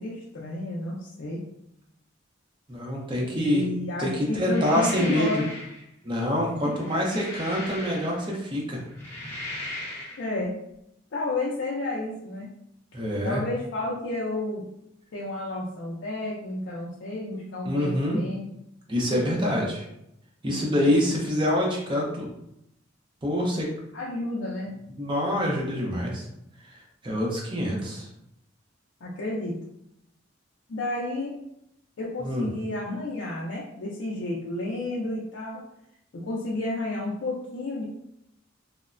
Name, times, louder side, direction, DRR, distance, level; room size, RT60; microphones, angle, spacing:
voice 1, 0.0-1.4 3.3-5.5 6.6-6.7 10.2-10.5 11.1-12.5 13.2-14.6 15.1-18.4 20.7-20.9 23.9-24.7 29.0-29.5 30.7-31.3 32.0-35.6 36.2-37.9, left 2 dB, 70° left, -4 dB, 0.4 m, -31 dB
voice 2, 2.7-3.6 4.0-5.4 6.0-8.8 12.9-13.4 17.7-18.2 18.9-19.8 20.4-22.3 23.2-23.7 25.0-26.2 27.0-28.1 32.2-32.5, equal, 25° right, -2 dB, 0.5 m, -26 dB
sound 1, 4.3-5.8 6.6-8.4 8.9-10.2, left 1 dB, 10° left, 0.7 m, -38 dB
3.0 x 2.1 x 2.4 m, 0.79 s
head